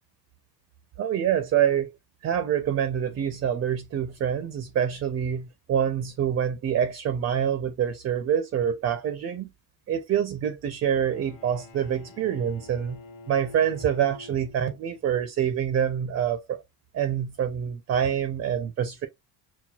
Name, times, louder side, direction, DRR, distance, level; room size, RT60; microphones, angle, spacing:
voice 1, 1.0-1.9 2.2-9.5 9.9-13.0 13.3-16.6 16.9-19.1, right 9 dB, 35° right, 0.4 m, -26 dB
Bowed string instrument, 11.0-15.1, left 3 dB, 55° left, 1.2 m, -47 dB
5.8 x 2.2 x 2.2 m
cardioid pair, 145°, 40 cm